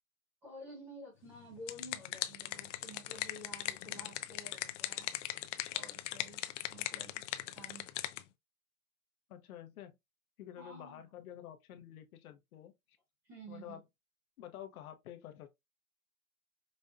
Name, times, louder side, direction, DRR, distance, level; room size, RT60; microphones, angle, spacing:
voice 1, 0.4-5.1 5.7-6.4 6.7-7.2 7.5-7.9 10.6-11.0 13.2-13.8, equal, 5° right, 0.3 m, -51 dB
sound 1, 1.4-8.2, left 13 dB, 55° left, 0.5 m, -39 dB
voice 2, 9.3-9.9 10.4-12.7 13.5-13.8 14.4-15.5, left 11 dB, 75° left, 0.9 m, -49 dB
5.2 x 2.2 x 2.5 m
hypercardioid pair, 150°, 44 cm